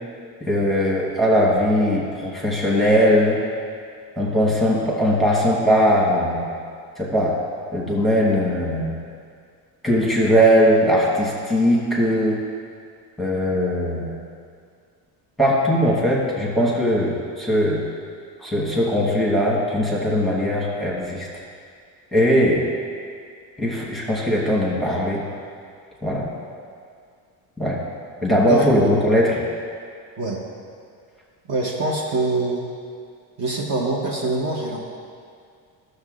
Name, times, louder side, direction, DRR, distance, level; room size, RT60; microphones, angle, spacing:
voice 1, 0.5-3.4 4.2-6.4 7.0-7.4 7.7-9.0 9.8-12.4 13.2-14.1 15.4-17.8 18.4-21.3 22.1-22.7 23.6-25.2 26.0-26.3 27.6-27.8 28.2-29.4, equal, ahead, -5 dB, 1.1 m, -19 dB
voice 2, 28.5-28.9 30.2-30.4 31.5-32.6 33.4-34.8, right 2 dB, 40° right, -3 dB, 0.9 m, -24 dB
14.5 x 6.6 x 2.4 m, 2.2 s
cardioid pair, 170°, 42 cm